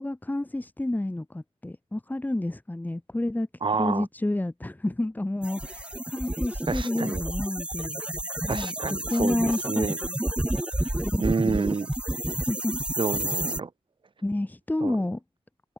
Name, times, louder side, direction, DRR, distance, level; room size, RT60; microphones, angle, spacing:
voice 1, 0.0-3.5 3.8-8.0 8.4-10.1 11.0-11.6 12.5-12.7 14.2-15.2, left 1 dB, 15° left, 2.8 m, -30 dB
voice 2, 3.6-4.1 6.7-7.2 8.5-10.0 10.5-11.9 13.0-13.7 14.8-15.0, right 4 dB, 45° right, 1.9 m, -29 dB
sound 1, 5.4-13.6, right 1 dB, 10° right, 1.8 m, -30 dB
wide cardioid pair, 85°, 11 cm